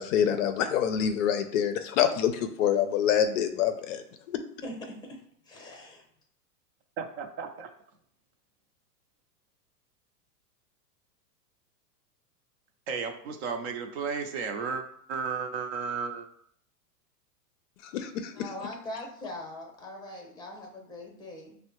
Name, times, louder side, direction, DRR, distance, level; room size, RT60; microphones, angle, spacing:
voice 1, 0.0-4.4 17.8-18.3, left 9 dB, 55° left, 8 dB, 0.5 m, -26 dB
voice 2, 4.6-5.2 5.4-6.0 18.4-21.6, left 1 dB, 10° left, 1 dB, 0.7 m, -41 dB
voice 3, 7.0-7.7 12.9-16.3, right 5 dB, 45° right, 6 dB, 0.6 m, -34 dB
5.3 x 2.1 x 2.9 m, 0.63 s
hypercardioid pair, 125°, 48 cm